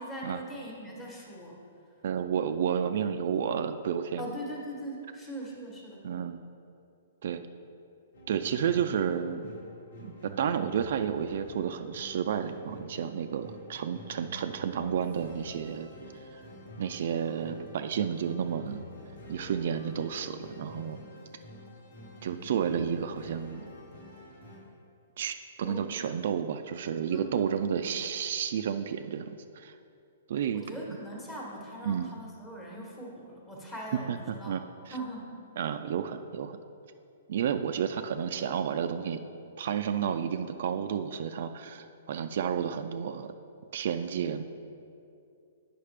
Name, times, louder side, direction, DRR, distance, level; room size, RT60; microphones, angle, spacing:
voice 1, 0.0-1.6 4.2-6.1 25.6-25.9 27.1-27.7 30.5-34.5 34.9-35.3, right 1 dB, 15° left, -3 dB, 1.2 m, -41 dB
voice 2, 2.0-4.3 6.0-6.4 7.2-7.4 8.3-9.5 10.0-16.4 16.8-18.8 19.3-21.0 22.2-23.7 25.2-29.7 30.3-31.0 31.9-32.1 33.9-34.9 35.6-36.6 37.3-39.2 39.6-43.3 43.7-44.4, right 8 dB, 60° right, 8 dB, 0.3 m, -31 dB
sound 1, 8.1-24.6, equal, 85° left, 1.7 m, -48 dB
8.3 x 5.7 x 3.3 m, 2.5 s
hypercardioid pair, 155°, 0 cm